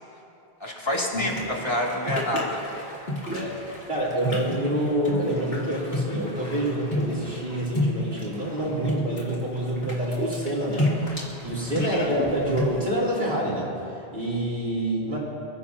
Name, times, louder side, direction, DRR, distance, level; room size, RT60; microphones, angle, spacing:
voice 1, 0.6-2.6 11.8-12.1, left 1 dB, 25° left, -4 dB, 2.7 m, -28 dB
sound 1, 1.1-12.8, left 1 dB, 65° left, 3.2 m, -31 dB
voice 2, 3.3-15.2, right 1 dB, 60° right, -5 dB, 4.4 m, -27 dB
28.0 x 15.5 x 2.9 m, 2.8 s
omnidirectional pair, 1.1 m